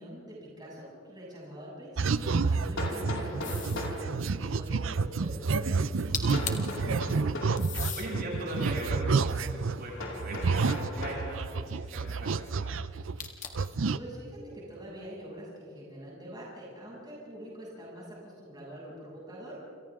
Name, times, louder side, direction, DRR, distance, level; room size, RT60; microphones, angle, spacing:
voice 1, 0.0-7.3 13.9-19.6, right 1 dB, 20° right, -6 dB, 7.3 m, -45 dB
Hammer, 1.2-1.3 2.8-4.1 6.3-7.6 10.0-11.3, left 2 dB, 80° left, 4.9 m, -37 dB
sound 1, 2.0-9.8 10.2-13.3 13.5-14.0, right 4 dB, 80° right, 0.6 m, -30 dB
sound 2, 3.4-3.9 5.9-6.0 6.1-6.8 7.6-8.1 8.8-10.2 13.2-13.8, left 8 dB, 40° left, 2.0 m, -38 dB
voice 2, 7.9-9.5 9.8-12.7, right 1 dB, 50° right, -4 dB, 7.5 m, -38 dB
29.5 x 28.0 x 3.7 m, 2.3 s
head